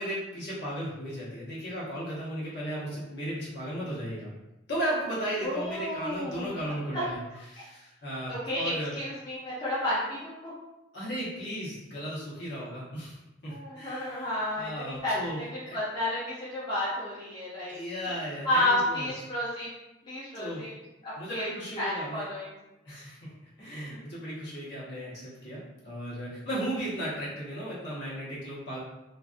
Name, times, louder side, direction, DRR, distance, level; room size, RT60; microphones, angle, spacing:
voice 1, 0.0-4.3 4.7-7.2 7.5-8.9 10.9-13.2 13.4-15.8 17.7-19.3 20.3-20.6 21.2-22.3 22.8-23.2 23.6-28.8, equal, 60° left, -7 dB, 1.0 m, -35 dB
voice 2, 5.4-6.6 6.9-7.0 8.3-10.4 13.5-17.8 18.4-19.7 20.1-20.7 21.0-21.5 21.8-22.5, left 1 dB, 25° left, -9 dB, 0.5 m, -31 dB
2.5 x 2.4 x 2.4 m, 0.98 s
head